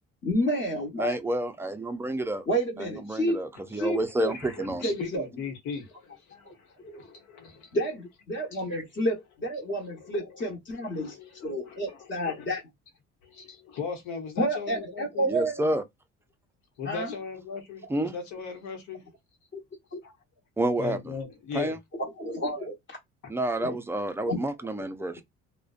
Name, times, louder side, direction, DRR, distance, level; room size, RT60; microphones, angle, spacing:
voice 1, 0.2-1.2 2.5-3.4 3.7-4.3 4.8-5.3 6.4-6.5 6.8-7.1 7.7-11.2 11.4-12.6 14.4-15.6 16.8-17.1 19.5-19.6 19.9-20.0 22.0-22.7 23.6-23.7 24.2-24.4 24.8-24.9, equal, 40° left, 1.2 m, -30 dB
voice 2, 1.0-2.5 2.8-4.9 8.7-8.8 15.3-15.8 17.9-18.1 20.6-21.0 21.5-21.8 23.3-25.2, right 1 dB, 10° right, 0.4 m, -29 dB
voice 3, 4.3-7.8 8.5-8.6 10.0-10.5 10.9-12.5 13.2-15.3 16.8-19.0 20.0-20.1 20.8-21.8 23.2-23.3, left 6 dB, 80° left, 1.0 m, -39 dB
2.4 x 2.1 x 2.4 m
cardioid pair, 110°, 29 cm